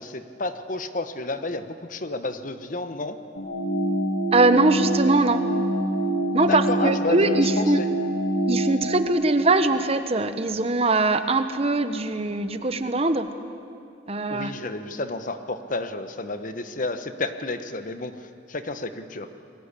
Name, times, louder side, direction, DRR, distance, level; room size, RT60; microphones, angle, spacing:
voice 1, 0.0-3.2 6.5-7.9 14.3-18.1 18.5-19.3, left 2 dB, 45° left, 9 dB, 1.2 m, -30 dB
sound 1, 3.4-9.0, right 1 dB, 80° left, 3.4 m, -25 dB
voice 2, 4.3-5.4 6.3-7.8 8.5-13.3 14.1-14.5, right 2 dB, 35° right, 10 dB, 1.2 m, -22 dB
29.5 x 21.0 x 8.4 m, 2.5 s
head